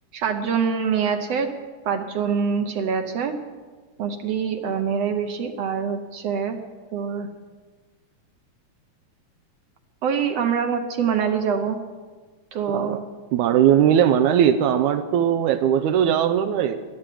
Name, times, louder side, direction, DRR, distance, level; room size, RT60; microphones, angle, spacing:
voice 1, 0.1-1.5 1.9-3.4 4.0-6.6 6.9-7.3 10.0-11.8 12.5-13.0, right 6 dB, 65° right, 5 dB, 1.8 m, -24 dB
voice 2, 12.7-13.0 13.3-16.8, right 9 dB, 85° right, 8 dB, 2.1 m, -19 dB
12.0 x 11.5 x 9.2 m, 1.4 s
omnidirectional pair, 3.5 m